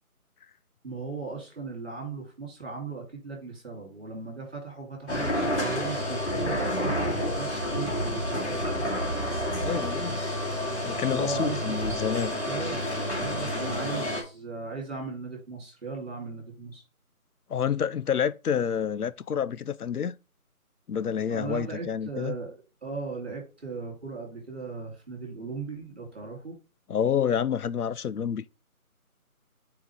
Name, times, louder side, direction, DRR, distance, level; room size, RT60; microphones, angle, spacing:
voice 1, 0.8-8.9 11.1-12.1 12.5-16.8 21.3-26.6, right 4 dB, 45° right, 3.4 m, -37 dB
sound 1, 5.1-14.2, equal, 50° left, 2.5 m, -29 dB
voice 2, 9.6-10.2 10.8-12.3 17.5-20.2 20.9-22.4 26.9-28.4, left 8 dB, 80° left, 0.6 m, -28 dB
7.5 x 4.4 x 3.6 m
figure-of-eight pair, 175°, 44 cm